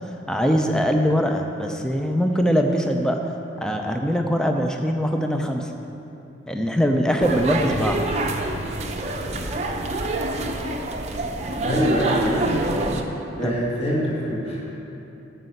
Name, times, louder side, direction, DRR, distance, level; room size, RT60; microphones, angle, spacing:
voice 1, 0.3-3.3 3.6-5.7 6.5-8.0 13.4-13.5, equal, 5° left, 3 dB, 0.5 m, -22 dB
sound 1, 7.2-13.0, right 2 dB, 35° right, 0.6 m, -26 dB
voice 2, 11.6-12.5 13.4-14.7, equal, 30° left, -5 dB, 1.8 m, -24 dB
9.3 x 5.7 x 7.9 m, 2.8 s
head